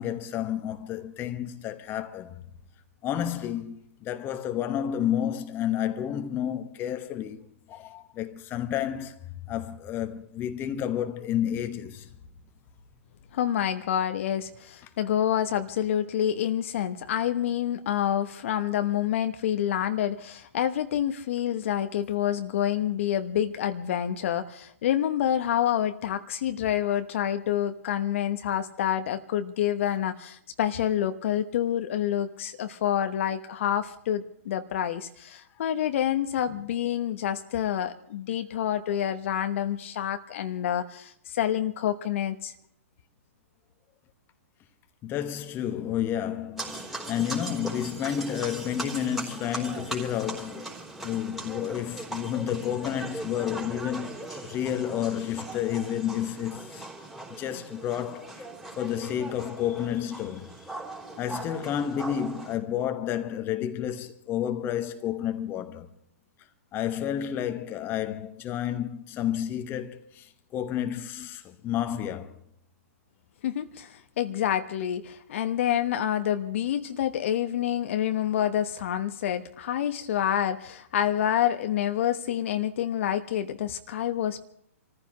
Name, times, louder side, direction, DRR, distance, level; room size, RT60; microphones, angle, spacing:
voice 1, 0.0-2.3 3.0-9.2 9.5-12.1 45.0-50.7 51.0-56.8 57.4-58.5 58.8-60.5 61.2-65.9 66.7-70.3 70.5-72.3, left 10 dB, 25° left, 1.3 m, -30 dB
voice 2, 13.3-42.5 73.4-84.4, left 10 dB, 55° left, 1.1 m, -28 dB
sound 1, 46.6-62.6, right 2 dB, 5° right, 3.6 m, -39 dB
27.5 x 14.5 x 3.1 m
hypercardioid pair, 125°, 8 cm